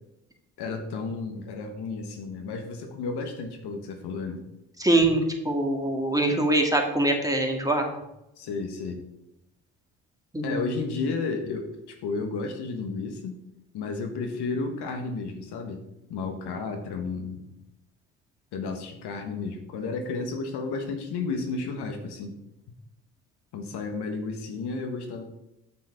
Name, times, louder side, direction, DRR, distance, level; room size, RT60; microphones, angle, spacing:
voice 1, 0.6-4.4 8.4-9.0 10.4-13.4 13.7-15.8 16.1-17.4 18.5-22.3 23.5-25.2, left 4 dB, 65° left, 4 dB, 1.4 m, -32 dB
voice 2, 4.8-7.9 10.3-10.6, right 1 dB, 10° right, 2 dB, 2.0 m, -23 dB
8.3 x 6.3 x 4.4 m, 0.88 s
hypercardioid pair, 50°, 43 cm